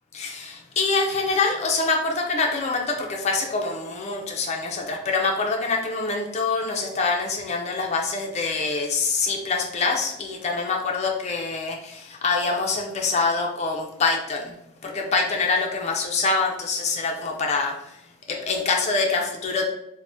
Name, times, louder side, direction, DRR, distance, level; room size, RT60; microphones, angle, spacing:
voice 1, 0.1-14.6 14.8-17.9 18.3-19.7, left 4 dB, 30° left, 0 dB, 0.4 m, -25 dB
3.3 x 2.1 x 2.5 m, 0.80 s
head